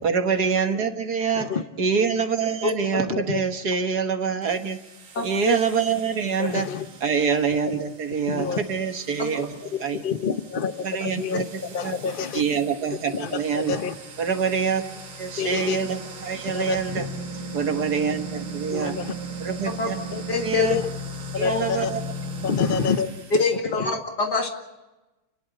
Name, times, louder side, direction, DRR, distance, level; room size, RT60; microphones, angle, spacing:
voice 1, 0.0-1.5 1.8-4.8 5.2-6.7 7.0-10.0 10.8-12.0 12.3-13.8 14.2-14.8 15.2-17.1 17.5-18.9 19.4-20.0 20.3-20.8 21.4-22.1, right 6 dB, 50° right, 7 dB, 1.6 m, -25 dB
voice 2, 2.6-3.0 5.2-5.6 9.2-9.3 19.8-19.9 20.3-20.7 21.4-21.6 23.3-24.5, left 3 dB, 50° left, 3 dB, 2.8 m, -25 dB
sound 1, 4.4-23.5, right 1 dB, 70° right, 2.8 m, -38 dB
voice 3, 6.4-6.9 8.3-8.6 9.7-10.7 11.0-11.4 11.7-12.4 13.1-13.9 15.4-15.8 16.5-17.0 18.7-19.1 20.1-20.2 20.6-20.9 21.3-21.9 22.4-23.1 23.8-23.9, left 6 dB, 65° left, 10 dB, 0.5 m, -27 dB
30.0 x 11.0 x 9.0 m, 1.0 s
omnidirectional pair, 2.4 m